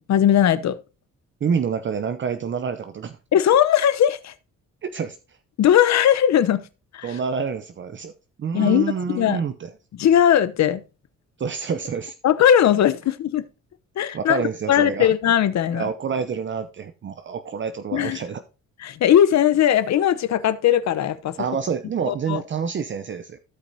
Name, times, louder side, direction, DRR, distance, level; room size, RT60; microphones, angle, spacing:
voice 1, 0.1-0.7 3.3-4.3 5.6-6.6 6.9-7.2 8.5-9.4 10.0-10.8 12.2-13.4 14.0-14.4 14.7-15.8 17.9-18.2 18.8-21.4 22.1-22.4, left 10 dB, 65° left, 0.9 m, -19 dB
voice 2, 1.4-3.2 4.8-5.4 7.0-8.1 8.4-9.7 11.4-12.1 14.1-15.1 15.7-18.4 21.4-23.4, right 6 dB, 40° right, 0.7 m, -27 dB
15.5 x 5.3 x 2.7 m
cardioid pair, 90°, 30 cm